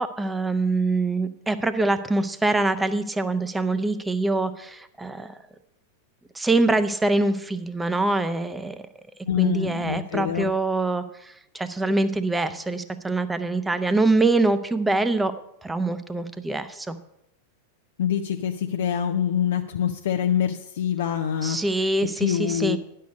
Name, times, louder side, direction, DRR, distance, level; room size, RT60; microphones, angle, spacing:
voice 1, 0.0-5.4 6.3-8.7 9.4-15.3 15.6-17.0 21.4-22.8, right 2 dB, 10° right, 11 dB, 0.7 m, -24 dB
voice 2, 9.3-10.5 18.0-21.6 22.2-22.8, left 9 dB, 60° left, 6 dB, 0.5 m, -25 dB
10.5 x 6.6 x 6.4 m, 0.79 s
figure-of-eight pair, 90°, 0 cm